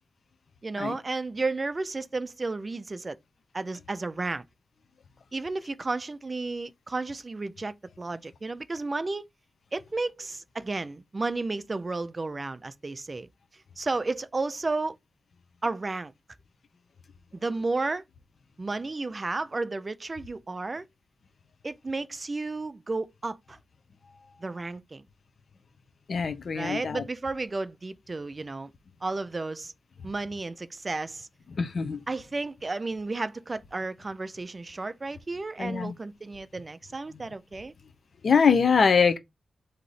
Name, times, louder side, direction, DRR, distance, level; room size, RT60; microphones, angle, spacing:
voice 1, 0.6-3.2 3.5-4.4 5.3-9.3 9.7-13.3 13.8-15.0 15.6-16.1 17.3-18.0 18.6-20.8 21.6-23.6 24.4-25.0 26.5-28.7 29.0-29.7 30.0-31.3 32.1-37.7, right 3 dB, 25° right, 0.4 m, -32 dB
voice 2, 26.1-27.0 31.6-32.0 35.6-35.9 38.2-39.2, left 6 dB, 55° left, 0.7 m, -23 dB
3.9 x 2.8 x 4.8 m
wide cardioid pair, 180°, 0 cm